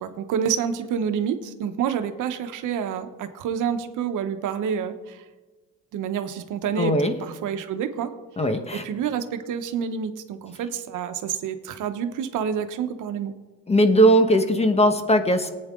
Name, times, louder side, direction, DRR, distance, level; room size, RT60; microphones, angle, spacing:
voice 1, 0.0-5.2 5.9-8.1 8.7-13.3, right 7 dB, 85° right, 9 dB, 1.1 m, -28 dB
voice 2, 6.8-7.1 8.4-8.8 13.7-15.5, equal, 20° left, 7 dB, 1.2 m, -19 dB
18.5 x 8.8 x 3.7 m, 1.3 s
cardioid pair, 90°, 30 cm